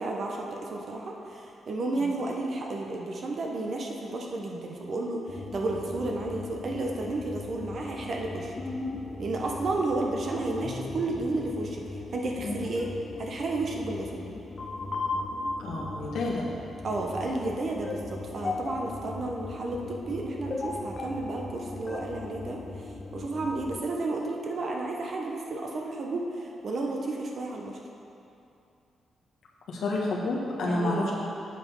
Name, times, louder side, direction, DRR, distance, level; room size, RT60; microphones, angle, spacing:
voice 1, 0.0-8.5 9.2-11.8 12.1-12.9 13.2-14.3 16.8-22.6 23.1-27.8 30.6-31.1, right 2 dB, 50° right, 0 dB, 1.1 m, -32 dB
sound 1, 5.3-23.8, left 3 dB, 40° left, 0.8 m, -38 dB
voice 2, 15.6-16.4 29.7-31.1, left 2 dB, 80° left, -4 dB, 1.4 m, -29 dB
7.9 x 6.6 x 5.5 m, 2.7 s
cardioid pair, 105°, 0 cm